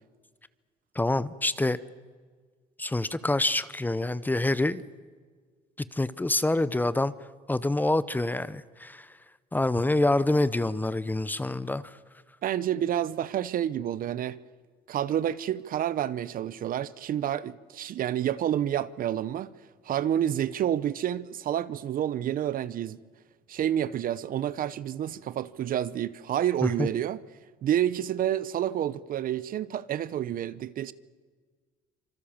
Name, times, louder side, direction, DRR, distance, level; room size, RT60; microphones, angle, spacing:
voice 1, 0.9-1.8 2.8-4.8 5.8-7.1 7.5-9.1 9.5-11.8 26.6-26.9, left 2 dB, 10° left, 0.8 m, -26 dB
voice 2, 12.4-14.4 14.9-19.5 19.8-23.0 23.5-27.2 27.6-30.9, right 11 dB, 55° right, 0.8 m, -29 dB
26.0 x 24.5 x 7.4 m
cardioid pair, 110°, 17 cm